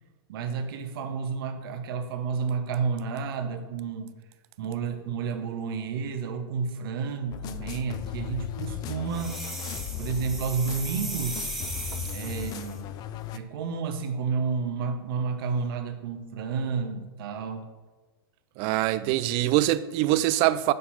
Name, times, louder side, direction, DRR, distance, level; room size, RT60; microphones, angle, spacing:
voice 1, 0.3-4.1 4.6-9.4 10.0-11.5 12.1-12.9 13.3-17.6 19.0-19.2, right 5 dB, 60° right, 0.9 m, -31 dB
sound 1, 7.3-13.4, left 9 dB, 30° left, 0.4 m, -36 dB
sound 2, 9.1-12.8, right 1 dB, ahead, 1.7 m, -37 dB
voice 2, 18.6-20.7, right 15 dB, 40° right, 0.4 m, -23 dB
6.6 x 4.2 x 5.5 m
hypercardioid pair, 115°, 13 cm